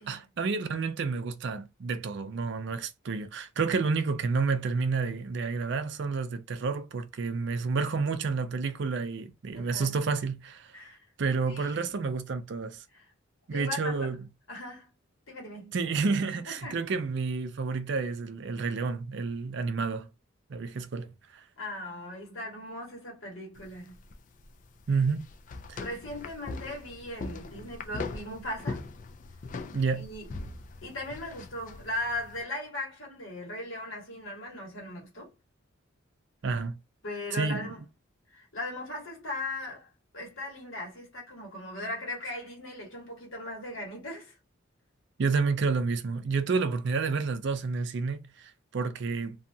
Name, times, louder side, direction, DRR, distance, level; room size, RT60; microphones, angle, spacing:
voice 1, 0.1-10.8 11.2-12.8 13.5-14.2 15.7-20.1 20.5-21.4 24.9-25.3 25.7-25.8 29.7-30.1 36.4-36.8 37.3-37.7 45.2-49.5, right 4 dB, 55° right, 0.4 m, -30 dB
voice 2, 9.5-10.0 10.7-11.0 11.4-11.8 12.9-13.0 13.5-14.1 14.5-14.9 15.3-15.8 16.4-16.8 21.6-23.9 25.8-28.8 30.0-30.3 30.8-35.3 37.0-37.8 38.3-44.4, left 1 dB, 75° left, 1.5 m, -38 dB
sound 1, 23.5-32.4, left 3 dB, 40° left, 0.3 m, -41 dB
2.7 x 2.3 x 2.6 m
head